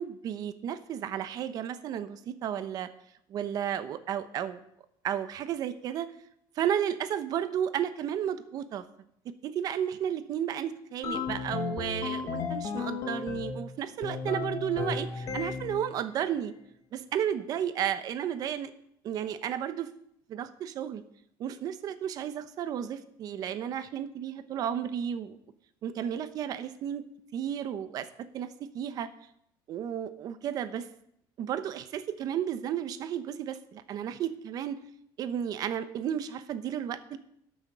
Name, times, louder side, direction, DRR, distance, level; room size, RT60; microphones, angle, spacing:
voice 1, 0.0-2.9 3.3-4.6 5.0-6.1 6.6-8.8 9.4-16.5 16.9-18.7 19.0-19.9 20.3-21.0 21.4-25.4 25.8-27.0 27.3-28.1 28.3-29.1 29.7-30.9 31.4-34.8 35.2-37.2, right 9 dB, 40° right, 12 dB, 0.8 m, -33 dB
sound 1, 11.0-13.7 14.0-15.9, left 6 dB, 35° left, 1.2 m, -34 dB
12.0 x 6.5 x 6.7 m, 0.73 s
cardioid pair, 170°, 10 cm